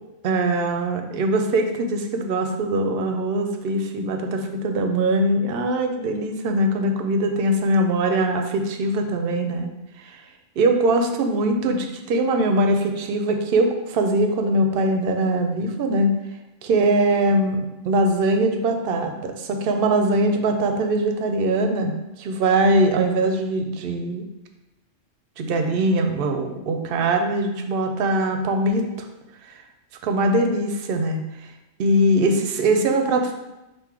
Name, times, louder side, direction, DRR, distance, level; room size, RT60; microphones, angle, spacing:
voice 1, 0.2-9.7 10.0-10.2 10.6-16.1 16.6-24.2 25.4-29.1 29.4-29.5 30.0-31.2 31.8-33.3, right 1 dB, 60° right, 5 dB, 0.7 m, -22 dB
3.8 x 2.6 x 4.6 m, 0.97 s
omnidirectional pair, 1.2 m